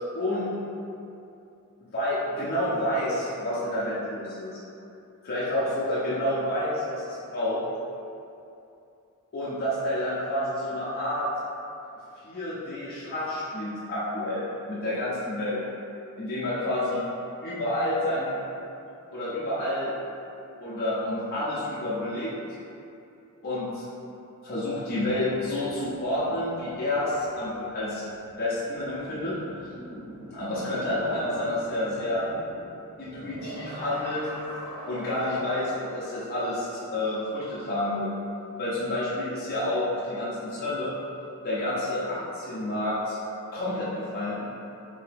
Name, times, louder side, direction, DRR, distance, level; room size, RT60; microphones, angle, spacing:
voice 1, 0.1-0.5 1.9-4.6 5.2-7.6 9.3-11.3 12.2-15.6 16.2-17.0 17.4-18.4 19.1-19.9 20.6-22.3 23.4-23.9 24.4-28.0 28.4-29.7 30.3-32.3 33.0-34.3 34.9-38.1 38.6-40.9 41.4-43.2 43.5-44.4, left 1 dB, 45° left, -9 dB, 0.6 m, -29 dB
sound 1, 24.7-38.6 39.0-40.3, right 1 dB, 35° right, 0.9 m, -45 dB
2.7 x 2.7 x 3.4 m, 2.7 s
head